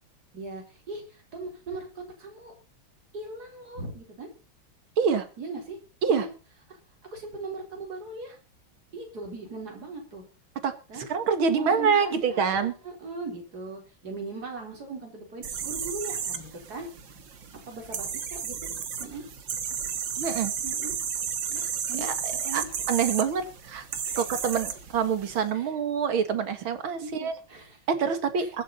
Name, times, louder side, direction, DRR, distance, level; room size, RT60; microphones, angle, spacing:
voice 1, 0.3-2.5 3.1-4.3 5.4-5.8 6.1-6.3 6.7-6.8 7.1-8.4 8.9-10.2 10.9-11.1 11.5-16.9 17.7-18.7 19.0-19.2 20.6-20.9 21.5-22.1 22.4-22.7 24.1-24.2 25.5-25.7 27.0-27.8 28.4-28.6, right 3 dB, 50° right, 1 dB, 4.6 m, -39 dB
voice 2, 11.1-12.7 20.2-20.5 22.0-22.1 22.5-22.6 22.9-23.8 24.2-27.3 27.9-28.6, right 6 dB, 85° right, 10 dB, 2.5 m, -26 dB
sound 1, 15.4-25.4, right 7 dB, 65° right, 2.3 m, -33 dB
22.5 x 8.4 x 4.1 m, 0.33 s
omnidirectional pair, 2.2 m